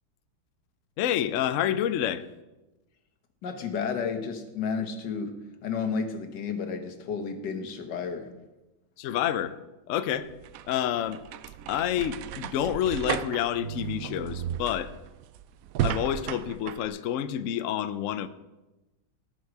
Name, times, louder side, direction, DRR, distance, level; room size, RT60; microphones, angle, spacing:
voice 1, 1.0-2.3 9.0-9.6 9.9-10.3 10.7-11.2 11.7-14.9 15.8-18.3, left 10 dB, 85° left, 12 dB, 0.7 m, -28 dB
voice 2, 3.4-5.3 5.6-8.3, left 5 dB, 65° left, 6 dB, 1.7 m, -32 dB
sound 1, 10.2-16.9, right 10 dB, 90° right, 0.7 m, -34 dB
18.5 x 6.3 x 4.7 m, 1.0 s
omnidirectional pair, 2.0 m